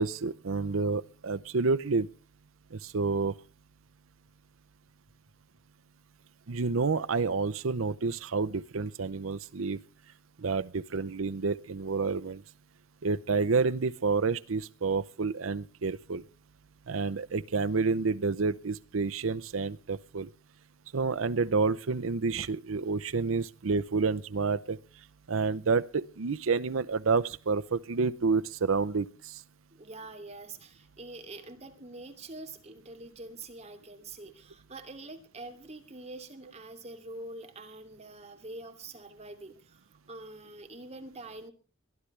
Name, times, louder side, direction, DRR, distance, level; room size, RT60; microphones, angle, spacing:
voice 1, 0.0-2.1 2.7-3.3 6.5-9.8 10.4-12.4 13.0-16.2 16.9-20.3 20.9-24.8 25.3-29.4, right 4 dB, 90° right, 14 dB, 0.7 m, -29 dB
voice 2, 29.7-41.5, right 2 dB, 35° right, 6 dB, 2.7 m, -45 dB
22.0 x 13.0 x 3.3 m, 0.36 s
head